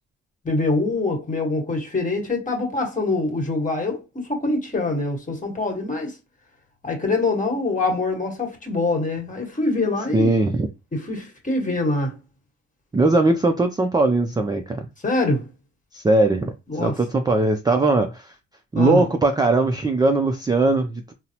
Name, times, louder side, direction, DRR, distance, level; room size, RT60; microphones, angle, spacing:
voice 1, 0.4-6.2 6.8-10.3 10.9-12.1 15.0-15.4 16.7-17.0 18.7-19.1, left 2 dB, 25° left, 1.3 m, -24 dB
voice 2, 10.1-10.7 12.9-14.8 15.9-18.3 18.7-21.1, right 2 dB, 15° right, 0.4 m, -20 dB
3.8 x 2.0 x 2.8 m
cardioid pair, 90°, 30 cm